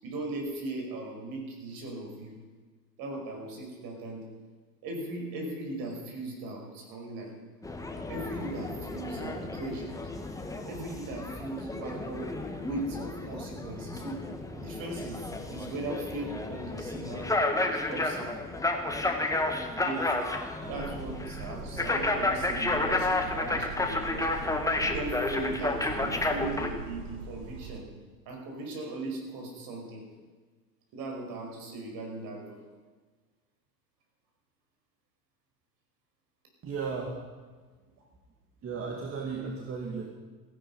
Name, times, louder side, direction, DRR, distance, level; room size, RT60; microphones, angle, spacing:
voice 1, 0.0-2.4 3.0-4.2 4.8-7.3 8.1-10.0 10.7-12.3 12.6-14.2 14.5-18.4 19.7-20.1 20.7-24.3 24.7-27.9 28.3-30.1 30.9-32.6, right 2 dB, 45° right, 1 dB, 5.3 m, -38 dB
sound 1, 7.6-26.7, left 2 dB, 5° left, 1.6 m, -32 dB
sound 2, 20.6-27.8, right 5 dB, 65° right, 2.4 m, -42 dB
voice 2, 36.6-37.2 38.6-40.0, right 5 dB, 25° right, 0 dB, 2.4 m, -35 dB
16.5 x 15.5 x 5.5 m, 1.4 s
figure-of-eight pair, 85°, 48 cm